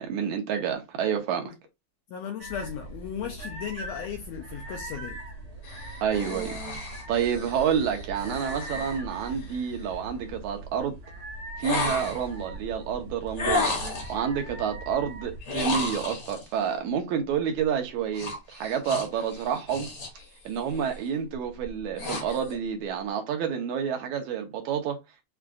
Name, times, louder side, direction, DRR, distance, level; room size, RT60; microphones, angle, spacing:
voice 1, 0.0-1.5 6.0-6.6 7.1-11.0 11.6-13.8 14.1-19.9 20.5-25.0, right 7 dB, 80° right, 2.4 m, -29 dB
voice 2, 2.1-5.2, left 8 dB, 80° left, 1.6 m, -36 dB
sound 1, 2.4-15.4, right 2 dB, 65° right, 0.9 m, -41 dB
sound 2, 5.6-9.8 11.6-12.4 13.4-14.2 15.4-16.5 18.1-20.2 20.6-21.0 21.5-22.6, left 2 dB, 50° left, 1.1 m, -33 dB
7.1 x 2.4 x 2.5 m
omnidirectional pair, 3.4 m